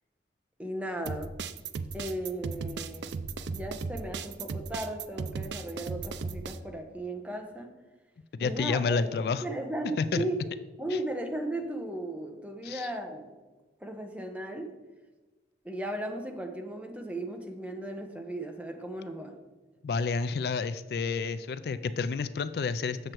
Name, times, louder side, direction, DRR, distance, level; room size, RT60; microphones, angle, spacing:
voice 1, 0.6-1.3 1.9-7.7 8.4-9.1 9.4-10.4 10.8-13.3 13.8-14.7 15.6-19.3, right 1 dB, 5° right, 4 dB, 0.8 m, -36 dB
sound 1, 1.1-6.6, right 4 dB, 80° right, 0.4 m, -36 dB
voice 2, 8.3-9.4 10.0-10.2 12.6-12.9 19.8-23.0, left 4 dB, 60° left, 13 dB, 0.3 m, -29 dB
7.9 x 6.4 x 4.5 m, 1.2 s
head